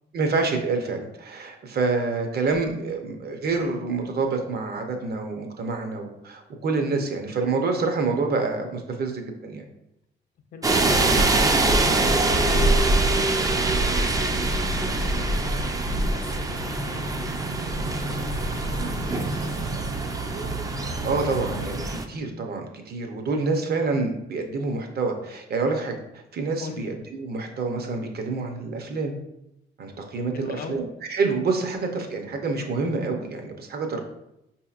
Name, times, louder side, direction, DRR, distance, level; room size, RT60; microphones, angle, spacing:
voice 1, 0.1-9.6 20.8-26.0 26.3-29.2 29.8-34.0, right 3 dB, 55° right, 4 dB, 0.7 m, -27 dB
voice 2, 10.5-19.6 26.6-26.8 30.3-30.8, left 5 dB, 50° left, 7 dB, 0.5 m, -41 dB
sound 1, 10.6-22.0, right 3 dB, 20° right, 0.3 m, -25 dB
sound 2, 10.7-21.7, right 1 dB, 70° right, 1.0 m, -28 dB
5.0 x 2.8 x 2.4 m, 0.85 s
cardioid pair, 90°, 20 cm